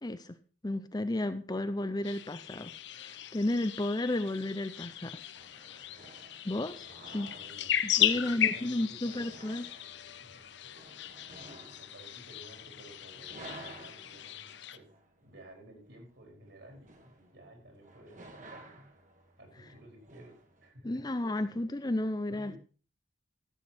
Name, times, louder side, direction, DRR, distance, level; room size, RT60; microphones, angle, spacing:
voice 1, 0.0-0.4 0.6-5.2 5.5-6.2 6.4-6.9 7.1-7.3 7.8-9.7 20.8-22.6, left 1 dB, 20° left, 0.5 m, -33 dB
sound 1, 2.0-14.8, left 11 dB, 60° left, 0.6 m, -36 dB
sound 2, 5.3-20.7, right 2 dB, 40° right, 1.7 m, -54 dB
voice 2, 6.9-9.4 10.2-10.9 11.4-14.9 15.2-18.9 19.4-21.0 21.3-21.5 22.3-22.6, right 1 dB, 60° right, 4.5 m, -54 dB
14.0 x 8.1 x 4.2 m
head